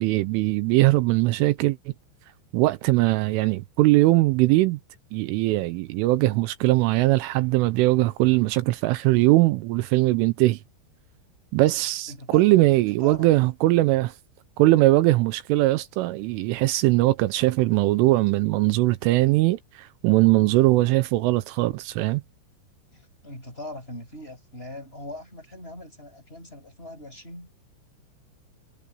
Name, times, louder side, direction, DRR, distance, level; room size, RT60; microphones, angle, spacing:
voice 1, 0.0-1.9 2.5-4.8 5.1-10.6 11.5-14.1 14.6-22.2, right 18 dB, 85° right, 3.2 m, -21 dB
voice 2, 12.1-12.4 12.7-13.3 22.9-27.5, left 1 dB, 10° left, 6.0 m, -41 dB
omnidirectional pair, 5.9 m